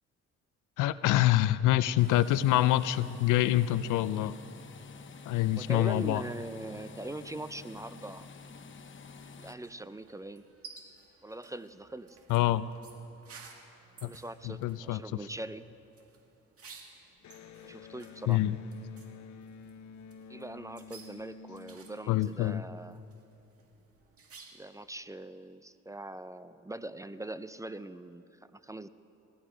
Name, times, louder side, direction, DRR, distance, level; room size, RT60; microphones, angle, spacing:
voice 1, 0.8-4.4 5.3-6.2 12.3-12.7 14.0-14.1 14.4-15.0 18.3-18.6 22.1-22.6, left 14 dB, 85° left, 16 dB, 0.5 m, -26 dB
sound 1, 2.0-9.5, left 4 dB, 40° left, 0.9 m, -48 dB
voice 2, 5.6-8.3 9.4-10.5 11.2-12.2 14.0-15.7 17.6-18.4 20.3-23.0 24.5-28.2 28.5-28.9, right 2 dB, 10° right, 13 dB, 0.4 m, -42 dB
sound 2, 9.6-24.8, right 4 dB, 50° right, 2.0 m, -56 dB
Electric guitar, 17.2-22.7, left 6 dB, 70° left, 1.0 m, -50 dB
19.0 x 14.0 x 5.0 m, 2.8 s
cardioid pair, 90°, 30 cm